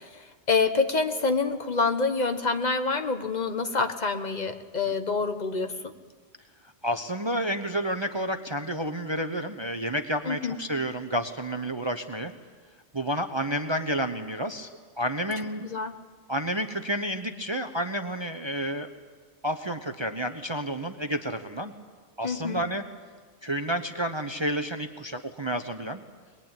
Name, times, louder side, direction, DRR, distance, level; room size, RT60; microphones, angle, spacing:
voice 1, 0.5-5.9 10.2-10.6 15.6-15.9 22.2-22.6, left 4 dB, 35° left, 7 dB, 1.4 m, -27 dB
voice 2, 6.8-12.3 12.9-14.7 15.0-15.6 16.3-18.9 19.4-21.7 22.2-22.8 23.4-26.0, equal, 25° right, 7 dB, 0.9 m, -30 dB
22.0 x 21.5 x 9.0 m, 1.5 s
omnidirectional pair, 1.3 m